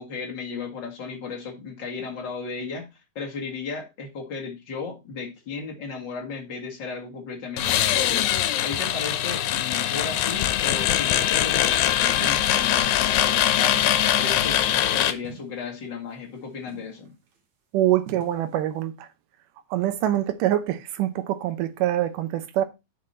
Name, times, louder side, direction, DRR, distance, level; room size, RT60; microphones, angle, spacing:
voice 1, 0.0-8.3 8.6-17.1, left 5 dB, 40° left, 2.0 m, -35 dB
sound 1, 7.6-15.1, left 12 dB, 90° left, 2.5 m, -22 dB
sound 2, 10.8-11.2 12.2-12.7 13.2-13.3 13.7-14.7 15.2-15.9 16.2-16.4 16.7-17.4 18.1-18.6, right 8 dB, 60° right, 2.6 m, -45 dB
voice 2, 17.7-18.9 19.7-22.6, right 13 dB, 75° right, 2.3 m, -24 dB
7.9 x 5.8 x 4.3 m
omnidirectional pair, 4.0 m